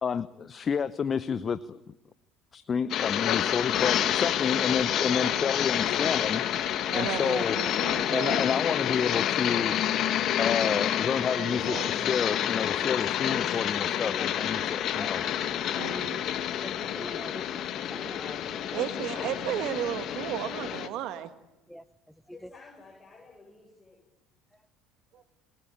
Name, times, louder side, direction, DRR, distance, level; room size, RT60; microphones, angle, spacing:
voice 1, 0.0-1.8 2.5-6.4 6.9-7.6 8.1-9.8 10.4-15.2, left 6 dB, 35° left, 16 dB, 0.8 m, -30 dB
sound 1, 2.9-20.9, left 10 dB, 55° left, 1.6 m, -28 dB
voice 2, 6.9-8.4 11.4-11.9 15.4-15.5 15.8-16.2 18.7-21.3, right 11 dB, 60° right, 10 dB, 1.5 m, -34 dB
voice 3, 13.3-14.3 14.6-15.1 16.6-19.1 21.7-21.8 22.3-22.5, equal, ahead, 11 dB, 1.0 m, -44 dB
voice 4, 15.7-17.3 22.3-24.0, left 4 dB, 20° left, -1 dB, 7.7 m, -52 dB
27.5 x 17.5 x 8.8 m, 0.95 s
hypercardioid pair, 65°, 0 cm